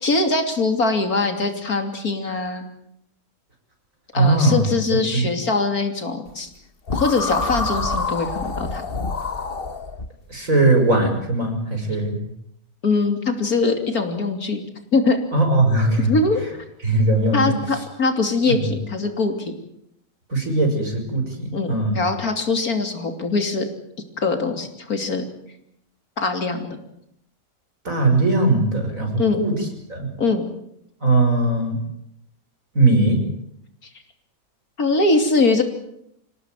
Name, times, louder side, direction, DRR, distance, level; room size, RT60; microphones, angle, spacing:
voice 1, 0.0-2.7 4.1-6.5 6.9-8.8 12.8-14.6 14.9-15.2 16.0-16.4 17.3-19.5 21.5-23.7 24.2-25.2 26.2-26.8 29.2-29.4 30.2-30.4 34.8-35.6, left 3 dB, 85° left, 6 dB, 3.5 m, -22 dB
voice 2, 4.1-4.7 5.1-5.3 10.3-12.2 15.3-16.1 16.8-17.6 18.5-18.7 20.3-22.0 27.8-29.5 29.9-30.1 31.0-31.8 32.7-33.2, right 2 dB, 65° right, 4 dB, 6.1 m, -19 dB
sound 1, 6.9-10.1, left 3 dB, 40° left, 1.6 m, -26 dB
27.0 x 17.5 x 9.1 m, 0.77 s
omnidirectional pair, 1.5 m